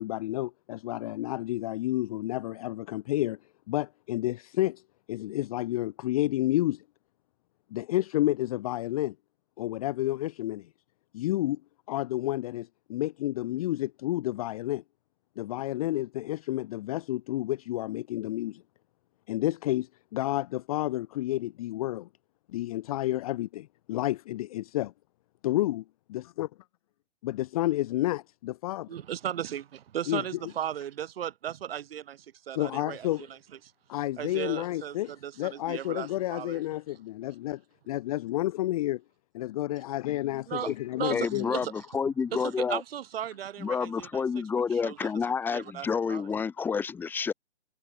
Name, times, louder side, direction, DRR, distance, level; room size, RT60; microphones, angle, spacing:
voice 1, 0.0-3.4 3.7-4.8 5.1-6.8 7.7-9.1 9.6-10.7 11.1-11.6 11.9-14.8 15.4-18.6 19.3-22.1 22.5-24.9 25.4-26.5 27.2-28.9 30.1-30.2 32.5-33.3 33.9-35.1 35.4-37.6 37.9-39.0 39.4-41.5 45.0-45.1, left 15 dB, 30° left, 1.0 m, -30 dB
voice 2, 28.9-33.4 34.2-36.6 40.5-41.8 42.3-45.1 45.5-46.3, right 10 dB, 50° right, 4.0 m, -36 dB
voice 3, 41.1-42.8 43.6-47.3, left 6 dB, 5° left, 1.0 m, -29 dB
hypercardioid pair, 150°, 36 cm